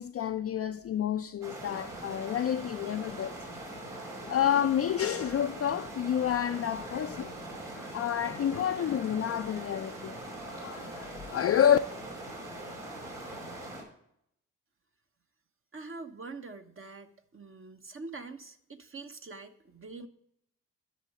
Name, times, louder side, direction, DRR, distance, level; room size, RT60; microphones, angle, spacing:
voice 1, 0.0-3.3 4.2-7.4 7.8-10.2 10.4-11.8, left 9 dB, 40° left, 0.5 m, -29 dB
sound 1, 1.4-13.8, right 1 dB, 80° right, 3.9 m, -42 dB
voice 2, 15.7-20.1, right 3 dB, 35° right, 1.1 m, -44 dB
11.0 x 6.3 x 4.8 m
hypercardioid pair, 40°, 36 cm